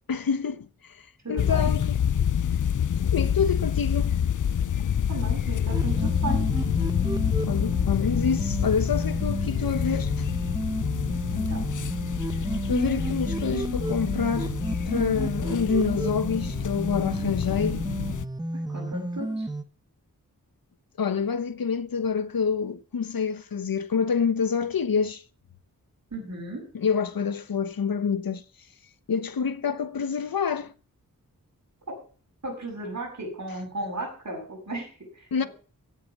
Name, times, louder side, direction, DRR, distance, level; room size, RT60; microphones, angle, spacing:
voice 1, 0.1-1.9 3.1-4.1 7.5-10.3 12.7-14.5 14.9-17.8 21.0-25.2 26.7-28.4 29.1-30.7 35.3-35.5, left 6 dB, 80° left, 1.1 m, -27 dB
voice 2, 1.2-1.7 5.1-6.5 11.3-11.6 18.5-19.5 26.1-26.7 31.9-32.0 32.4-35.5, right 2 dB, 55° right, 7.8 m, -35 dB
sound 1, 1.4-18.2, left 9 dB, 60° left, 0.6 m, -27 dB
sound 2, 5.7-19.6, right 1 dB, 10° right, 1.0 m, -32 dB
15.5 x 8.6 x 7.1 m
wide cardioid pair, 110°, 34 cm